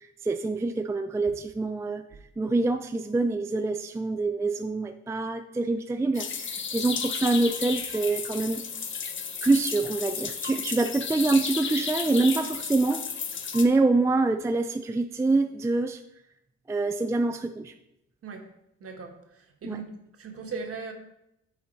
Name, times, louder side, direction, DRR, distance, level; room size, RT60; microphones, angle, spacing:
voice 1, 0.2-2.0 2.4-8.6 9.4-13.0 13.5-16.0 16.7-17.7 19.6-19.8, right 3 dB, 10° right, 0.4 m, -25 dB
sound 1, 6.1-13.7, left 6 dB, 40° left, 0.8 m, -33 dB
voice 2, 18.2-18.5 18.8-19.9 20.2-20.9, right 5 dB, 50° right, 1.4 m, -38 dB
8.5 x 4.2 x 4.4 m
cardioid pair, 90°, 30 cm